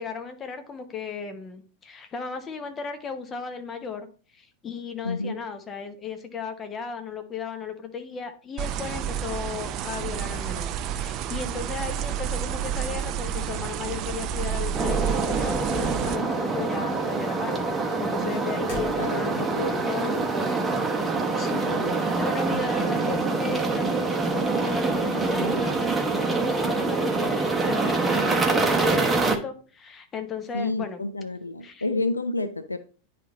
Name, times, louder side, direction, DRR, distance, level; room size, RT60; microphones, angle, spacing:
voice 1, 0.0-31.0 31.6-31.8, left 5 dB, 25° left, 1.0 m, -36 dB
voice 2, 5.0-5.4 18.9-20.1 21.6-22.0 22.5-23.3 25.3-25.7 30.5-32.8, left 2 dB, 80° left, 0.5 m, -31 dB
sound 1, 8.6-16.2, right 9 dB, 35° right, 0.4 m, -30 dB
sound 2, 14.3-15.6 15.9-16.4 16.7-19.5, left 2 dB, 45° left, 3.6 m, -43 dB
sound 3, 14.7-29.4, right 3 dB, 15° right, 0.9 m, -25 dB
9.9 x 3.4 x 3.9 m
figure-of-eight pair, 90°, 0 cm